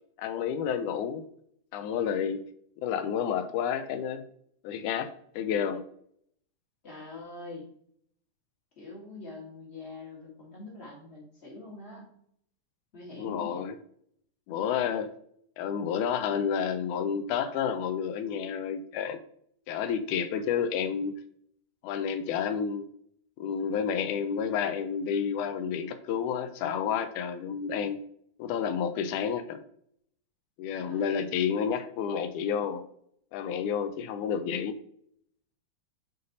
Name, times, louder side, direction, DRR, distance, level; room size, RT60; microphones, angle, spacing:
voice 1, 0.2-1.3 1.7-2.4 2.8-4.2 4.6-5.1 5.4-5.8 13.2-13.8 14.5-15.1 15.6-19.2 19.7-21.2 21.8-22.9 23.4-28.0 28.4-29.6 30.6-32.8 33.3-34.8, left 7 dB, 80° left, 10 dB, 1.8 m, -30 dB
voice 2, 6.8-7.7 8.8-12.1 12.9-13.6 30.8-31.3, left 2 dB, 35° left, -3 dB, 1.0 m, -44 dB
6.5 x 4.1 x 3.9 m, 0.68 s
omnidirectional pair, 4.0 m